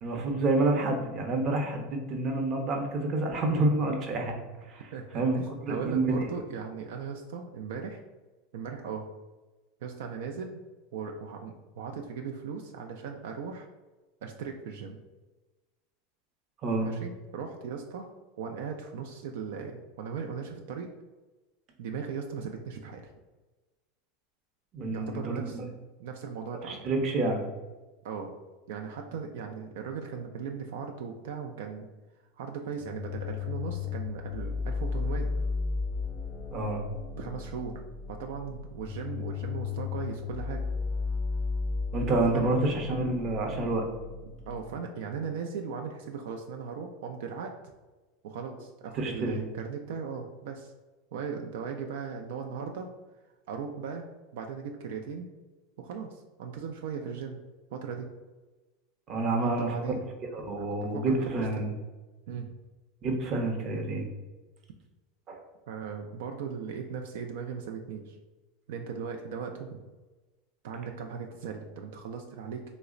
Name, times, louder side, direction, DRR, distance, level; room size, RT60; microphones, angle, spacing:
voice 1, 0.0-4.4 4.7-6.3 16.6-16.9 24.7-25.7 26.6-27.4 36.5-36.8 41.9-43.9 48.9-49.4 59.1-59.8 60.3-61.7 63.0-64.0 65.3-65.4, right 2 dB, 40° right, 3 dB, 0.6 m, -28 dB
voice 2, 4.9-8.0 8.5-9.1 9.8-10.6 10.9-13.7 14.2-15.0 16.8-18.1 18.4-20.9 21.8-23.0 24.9-26.9 28.0-28.3 28.7-31.9 32.3-35.3 37.2-40.6 42.1-42.7 44.5-47.5 48.2-50.7 51.1-52.9 53.5-54.1 54.3-55.3 55.8-57.4 57.7-58.1 59.3-60.1 60.6-61.6 62.3-62.5 65.7-68.2 68.7-69.8 70.6-72.6, right 6 dB, 75° right, 3 dB, 0.3 m, -38 dB
sound 1, 32.8-44.8, left 4 dB, 30° left, 0.5 m, -34 dB
3.2 x 2.0 x 3.6 m, 1.2 s
supercardioid pair, 130°, 0 cm